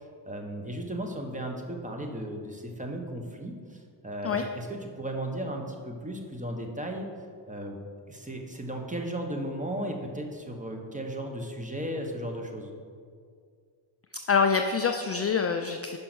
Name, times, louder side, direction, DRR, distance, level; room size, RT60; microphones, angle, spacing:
voice 1, 0.3-7.1 7.5-7.8 8.1-12.7, right 1 dB, 15° right, 2 dB, 1.2 m, -35 dB
voice 2, 14.3-16.0, left 5 dB, 30° left, 5 dB, 0.4 m, -25 dB
5.5 x 5.3 x 6.2 m, 2.2 s
cardioid pair, 65°, 50 cm